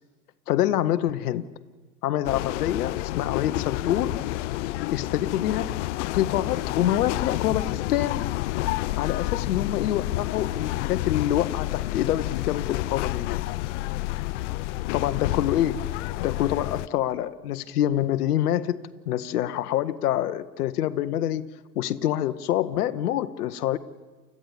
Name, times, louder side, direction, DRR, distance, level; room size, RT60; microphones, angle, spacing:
voice 1, 0.5-1.5 2.0-4.2 4.9-5.8 6.1-8.2 9.0-13.4 14.9-15.8 16.2-18.8 19.1-21.4 21.7-23.8, left 12 dB, 65° left, 13 dB, 1.0 m, -26 dB
sound 1, 2.2-16.9, left 18 dB, 50° left, 0.6 m, -29 dB
29.5 x 14.0 x 7.0 m, 1.3 s
figure-of-eight pair, 85°, 50 cm